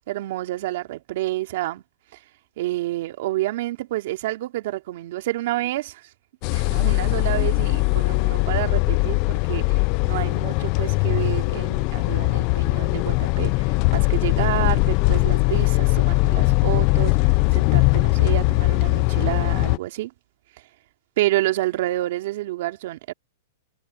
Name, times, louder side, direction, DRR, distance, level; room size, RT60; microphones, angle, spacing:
voice 1, 0.0-1.8 2.1-2.2 2.6-6.1 6.5-20.1 21.2-23.1, right 16 dB, 60° right, 2.8 m, -29 dB
sound 1, 6.4-19.8, left 26 dB, 40° left, 0.6 m, -20 dB
hypercardioid pair, 150°, 0 cm